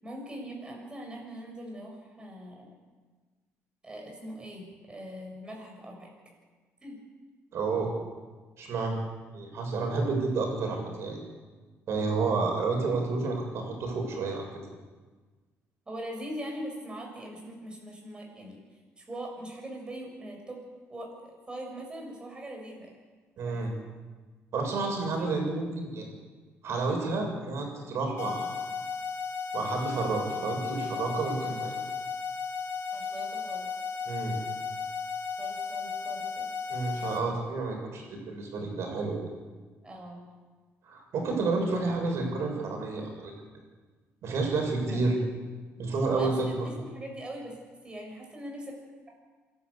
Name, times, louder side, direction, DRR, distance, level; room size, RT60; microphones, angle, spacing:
voice 1, 0.0-2.7 3.8-6.1 6.8-7.0 15.9-18.6 19.0-20.6 20.9-22.9 23.4-23.6 25.0-25.3 32.9-33.7 35.4-36.5 39.8-40.2 44.8-45.1 46.1-48.7, right 1 dB, 20° right, 1 dB, 7.5 m, -41 dB
voice 2, 7.5-7.9 8.6-9.0 9.3-11.2 11.9-14.5 23.4-23.7 24.5-26.1 26.6-28.5 29.5-31.7 34.1-34.4 36.7-39.2 40.9-43.3 44.2-45.1 45.8-46.7, right 3 dB, 60° right, 2 dB, 7.0 m, -30 dB
sound 1, 28.2-37.2, left 5 dB, 70° left, 3.4 m, -35 dB
27.0 x 12.5 x 8.5 m, 1.4 s
cardioid pair, 120°, 5 cm